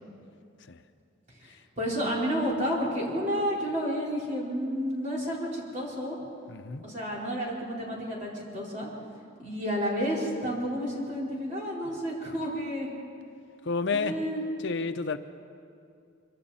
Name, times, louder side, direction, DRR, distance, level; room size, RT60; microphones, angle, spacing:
voice 1, 1.8-6.2 6.8-8.9 9.4-12.9 13.9-14.4, equal, 40° right, -4 dB, 4.4 m, -31 dB
voice 2, 6.5-6.9 13.7-14.2 14.6-15.2, left 4 dB, 60° left, 9 dB, 0.7 m, -30 dB
25.0 x 24.5 x 4.3 m, 2.5 s
head